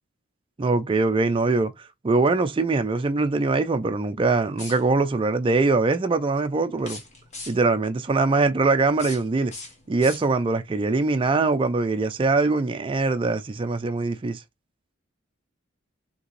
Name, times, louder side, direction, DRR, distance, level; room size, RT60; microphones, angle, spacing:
voice 1, 0.6-1.7 2.0-7.0 7.5-9.5 9.9-14.4, right 3 dB, 25° right, 0.4 m, -22 dB
sound 1, 4.5-5.2 6.7-7.8 8.8-10.6, left 3 dB, 35° left, 1.2 m, -41 dB
4.9 x 2.9 x 3.2 m
head